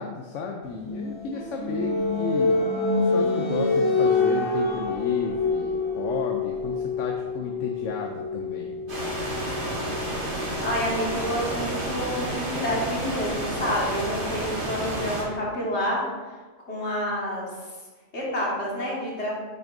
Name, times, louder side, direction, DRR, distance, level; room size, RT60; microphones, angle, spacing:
voice 1, 0.0-2.6 3.0-9.3, left 4 dB, 80° left, 2 dB, 1.0 m, -33 dB
sound 1, 0.8-12.3, left 3 dB, 40° left, 0.4 m, -27 dB
voice 2, 1.3-1.8 10.6-16.4 16.7-17.7 18.1-19.3, equal, 65° left, -5 dB, 2.1 m, -29 dB
sound 2, 8.9-15.2, right 1 dB, 45° right, 2.0 m, -30 dB
8.6 x 6.0 x 2.6 m, 1.3 s
omnidirectional pair, 1.3 m